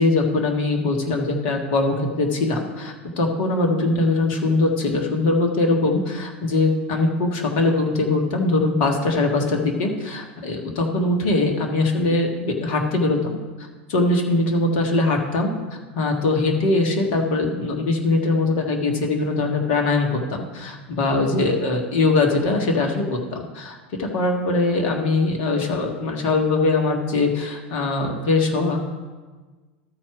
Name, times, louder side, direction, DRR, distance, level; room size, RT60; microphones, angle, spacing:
voice 1, 0.0-13.4 13.9-15.5 15.9-28.8, left 2 dB, 60° left, 2 dB, 1.5 m, -21 dB
13.0 x 4.4 x 4.8 m, 1.3 s
hypercardioid pair, 85°, 7 cm